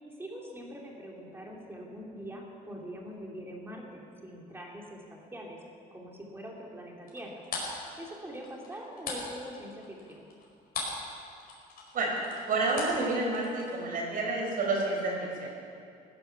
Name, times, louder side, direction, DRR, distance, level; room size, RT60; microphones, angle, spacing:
voice 1, 0.0-5.6 5.9-7.3 8.0-10.3, equal, 15° right, -1 dB, 3.1 m, -43 dB
sound 1, 7.1-11.1 11.3-13.7, left 4 dB, 65° left, 4.8 m, -39 dB
voice 2, 12.5-15.5, right 3 dB, 55° right, -1 dB, 5.2 m, -29 dB
16.5 x 11.0 x 6.9 m, 2.4 s
cardioid pair, 110°, 17 cm